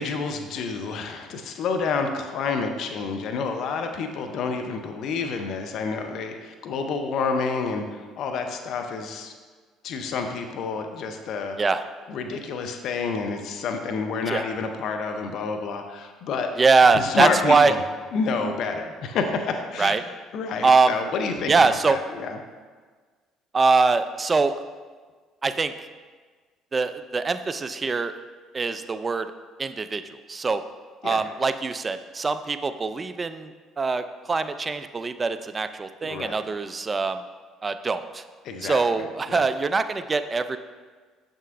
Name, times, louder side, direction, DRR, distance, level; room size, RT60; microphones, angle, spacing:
voice 1, 0.0-9.3 9.8-11.6 12.1-16.5 16.9-17.8 18.1-20.0 20.3-21.5 21.9-22.4 31.0-31.2 36.0-36.4 38.4-38.8 39.3-39.4, left 4 dB, 60° left, 5 dB, 0.6 m, -29 dB
voice 2, 16.6-17.7 19.8-20.0 20.6-21.1 21.5-22.0 23.5-24.5 25.4-25.9 26.7-28.1 28.5-29.3 29.6-30.6 31.0-37.2 37.6-38.2 38.6-40.6, right 4 dB, 30° right, 11 dB, 0.4 m, -23 dB
6.7 x 6.2 x 2.5 m, 1.5 s
hypercardioid pair, 60°, 0 cm